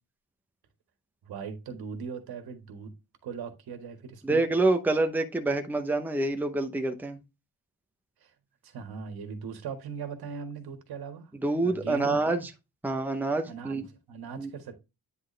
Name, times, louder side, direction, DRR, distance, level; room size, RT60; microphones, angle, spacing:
voice 1, 1.2-2.9 3.2-4.4 8.2-8.3 8.6-11.3 11.6-12.5 13.5-14.7, right 6 dB, 80° right, 1.8 m, -39 dB
voice 2, 4.2-7.2 11.4-12.5 12.8-13.8 14.4-14.5, right 2 dB, 5° right, 0.7 m, -27 dB
9.5 x 4.2 x 3.3 m
wide cardioid pair, 175°, 37 cm